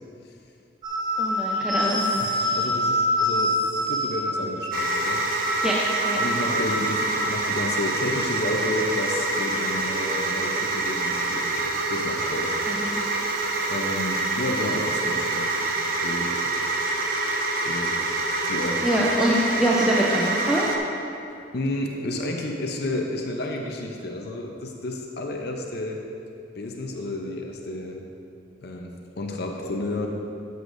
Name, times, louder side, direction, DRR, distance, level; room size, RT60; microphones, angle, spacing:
sound 1, 0.8-7.3, left 1 dB, 25° right, 1.1 m, -26 dB
voice 1, 1.2-2.2 5.6-5.8 6.0-6.2 12.7-13.0 18.8-20.7, right 1 dB, 5° right, -5 dB, 0.6 m, -24 dB
voice 2, 2.2-3.6 3.8-5.2 6.2-12.6 13.7-15.6 16.0-16.4 17.6-18.0 18.5-19.1 21.5-26.0 26.5-28.0 28.6-30.1, left 2 dB, 55° left, 2 dB, 0.7 m, -31 dB
sound 2, 4.7-20.8, right 2 dB, 50° right, 0.8 m, -26 dB
13.0 x 7.9 x 2.6 m, 2.6 s
head